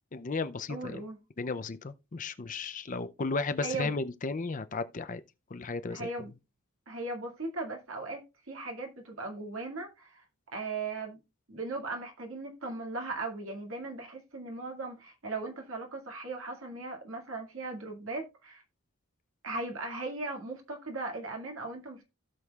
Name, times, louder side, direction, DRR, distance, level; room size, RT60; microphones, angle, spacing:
voice 1, 0.1-1.0 1.4-5.2 5.5-6.1, left 3 dB, 35° left, 0.5 m, -34 dB
voice 2, 0.7-1.2 3.6-3.9 5.9-6.3 6.9-10.2 10.5-11.2 11.5-18.6 19.4-22.0, right 3 dB, 65° right, 2.2 m, -38 dB
16.5 x 6.3 x 2.4 m
head